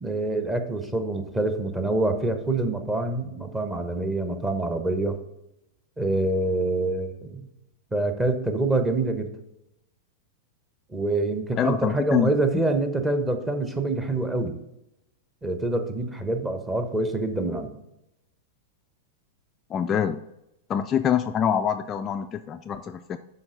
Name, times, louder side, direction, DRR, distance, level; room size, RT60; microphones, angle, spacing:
voice 1, 0.0-5.2 6.0-7.5 7.9-9.3 10.9-14.5 15.4-17.7, right 2 dB, 10° right, 8 dB, 1.0 m, -26 dB
voice 2, 11.6-12.3 19.7-20.2 20.7-23.2, left 8 dB, 25° left, 7 dB, 0.3 m, -25 dB
11.5 x 4.4 x 3.9 m, 0.85 s
figure-of-eight pair, 95°, 0 cm